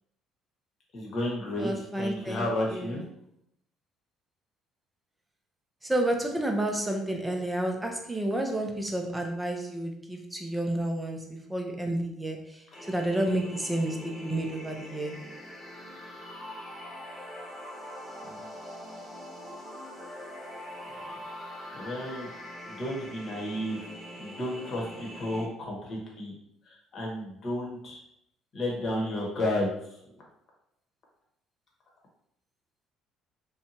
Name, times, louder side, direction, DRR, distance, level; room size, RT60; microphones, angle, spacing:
voice 1, 0.9-3.0 18.2-18.4 20.9-21.0 21.7-22.3 22.7-23.8 24.2-26.3 26.7-28.0 28.5-30.0, left 1 dB, 50° left, -2 dB, 1.0 m, -32 dB
voice 2, 1.6-2.5 2.7-3.0 5.8-11.2 11.5-12.5 12.9-15.2, right 1 dB, 10° right, 2 dB, 0.5 m, -30 dB
sound 1, 12.7-25.5, equal, 25° left, 1.1 m, -43 dB
2.7 x 2.2 x 2.7 m, 0.77 s
supercardioid pair, 90°, 0 cm